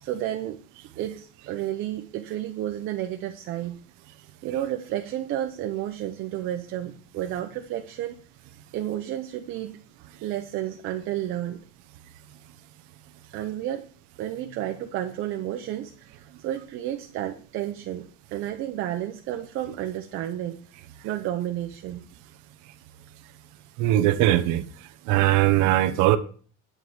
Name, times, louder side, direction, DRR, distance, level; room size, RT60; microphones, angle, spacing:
voice 1, 0.0-0.6 1.0-3.8 4.4-8.2 8.7-9.8 10.2-11.6 13.3-13.8 14.2-20.6 21.0-22.0, right 12 dB, 45° right, 0.7 m, -31 dB
voice 2, 23.8-24.6 25.1-26.2, right 14 dB, 90° right, 0.9 m, -20 dB
10.0 x 4.8 x 7.2 m
cardioid pair, 180°, 29 cm